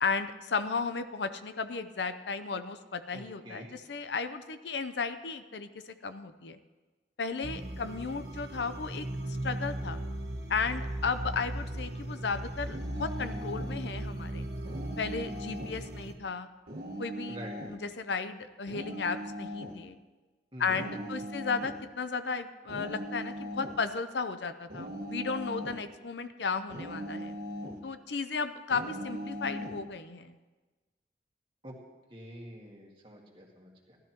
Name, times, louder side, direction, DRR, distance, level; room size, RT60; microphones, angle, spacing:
voice 1, 0.0-6.6 7.2-9.1 9.4-10.0 10.5-14.5 15.0-16.5 17.0-17.4 17.7-20.0 20.6-27.4 27.8-30.4, left 5 dB, 85° left, 10 dB, 0.6 m, -34 dB
voice 2, 3.1-3.7 17.3-17.5 20.5-21.3 31.6-31.8 32.1-34.0, equal, 30° right, -2 dB, 2.1 m, -46 dB
sound 1, 7.4-16.1, right 1 dB, 80° right, 1.3 m, -37 dB
sound 2, 12.7-13.8 14.6-15.8 16.7-17.8 18.7-19.8 20.7-21.8 22.7-23.8 24.7-25.8 26.7-27.8 28.7-29.8, equal, 55° right, 1.4 m, -39 dB
17.5 x 12.0 x 3.0 m, 1.2 s
head